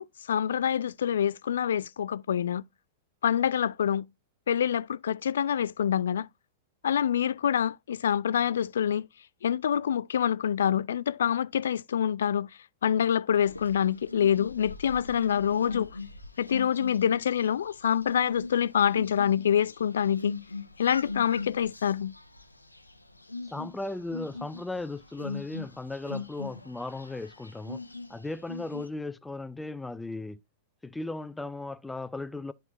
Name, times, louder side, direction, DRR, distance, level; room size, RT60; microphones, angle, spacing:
voice 1, 0.0-2.6 3.2-4.1 4.5-6.3 6.8-9.1 9.4-12.5 12.8-15.9 16.4-20.3 20.8-22.1, left 9 dB, 65° left, 0.3 m, -26 dB
sound 1, 13.4-28.9, left 3 dB, 90° left, 0.7 m, -41 dB
voice 2, 23.5-27.8 28.1-30.4 30.8-32.5, left 2 dB, 5° left, 0.5 m, -36 dB
10.5 x 4.4 x 2.9 m
figure-of-eight pair, 95°, 0 cm